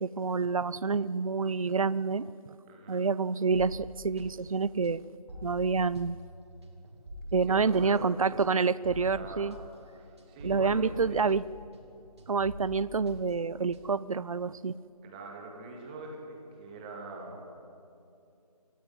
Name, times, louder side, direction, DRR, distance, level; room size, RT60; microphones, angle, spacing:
voice 1, 0.0-2.3 2.9-5.0 5.4-6.2 7.3-9.6 10.4-11.4 12.3-14.7, right 5 dB, 55° right, 19 dB, 0.5 m, -28 dB
voice 2, 2.7-3.0 7.5-8.1 9.1-9.5 10.0-11.2 15.0-17.6, right 3 dB, 15° right, 0 dB, 2.0 m, -43 dB
sound 1, 3.5-11.9 12.2-14.1, left 1 dB, 40° right, 3.5 m, -46 dB
23.0 x 14.0 x 9.5 m, 2.6 s
figure-of-eight pair, 160°, 21 cm